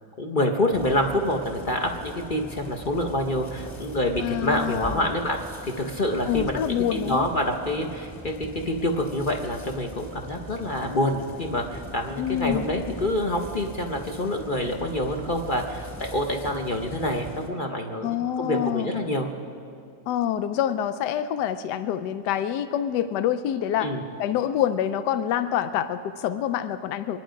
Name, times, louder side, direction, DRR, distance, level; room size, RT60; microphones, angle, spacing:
voice 1, 0.2-5.4 5.8-19.3 23.8-24.0, left 1 dB, 40° left, 3 dB, 0.9 m, -27 dB
sound 1, 0.7-17.5, right 1 dB, 5° left, 2.4 m, -41 dB
voice 2, 4.2-5.1 6.3-7.3 12.2-12.7 18.0-18.9 20.1-23.9 24.2-27.2, left 10 dB, 85° left, 11 dB, 1.2 m, -26 dB
25.0 x 10.5 x 5.1 m, 2.4 s
omnidirectional pair, 1.8 m